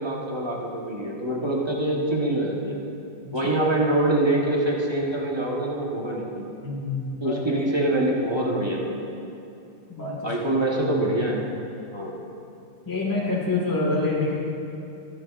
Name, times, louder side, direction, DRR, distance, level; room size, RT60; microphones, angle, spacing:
voice 1, 0.0-2.8 3.3-6.5 7.2-9.0 10.2-11.4 11.9-12.2, right 1 dB, 20° right, -3 dB, 0.7 m, -25 dB
voice 2, 6.6-7.3 9.9-10.3 12.8-14.3, left 3 dB, 10° left, -4 dB, 1.4 m, -26 dB
22.0 x 7.5 x 2.5 m, 2.7 s
omnidirectional pair, 2.2 m